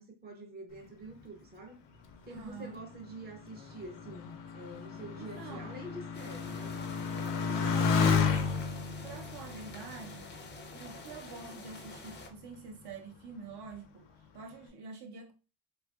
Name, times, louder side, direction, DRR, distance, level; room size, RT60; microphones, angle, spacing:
voice 1, 0.0-1.8 2.3-6.8, right 2 dB, 25° right, 0.5 m, -47 dB
Motorcycle, 2.1-11.1 11.8-12.4, left 5 dB, 80° left, 0.6 m, -33 dB
voice 2, 2.3-2.8 5.2-5.7 7.4-8.0 9.0-10.3 10.8-14.1 14.3-15.3, right 4 dB, 65° right, 0.6 m, -46 dB
sound 1, 6.1-12.3, left 2 dB, 30° left, 0.4 m, -48 dB
2.6 x 2.4 x 2.3 m
wide cardioid pair, 150°, 42 cm